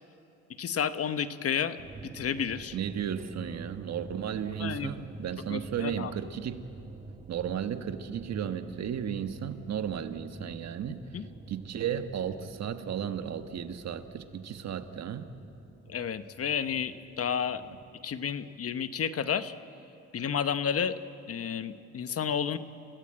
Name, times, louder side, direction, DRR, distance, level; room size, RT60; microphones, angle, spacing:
voice 1, 0.6-1.8 2.0-2.8 4.6-4.9 5.5-6.1 11.1-11.3 15.9-17.6 18.0-19.5 20.1-21.0 21.3-22.6, left 7 dB, 50° left, 12 dB, 1.0 m, -31 dB
sound 1, 1.8-18.5, right 3 dB, 25° right, 1.2 m, -48 dB
voice 2, 2.7-6.7 7.3-11.1 11.5-15.3, right 8 dB, 60° right, 9 dB, 1.4 m, -34 dB
29.0 x 17.0 x 8.8 m, 2.7 s
cardioid pair, 90°, 30 cm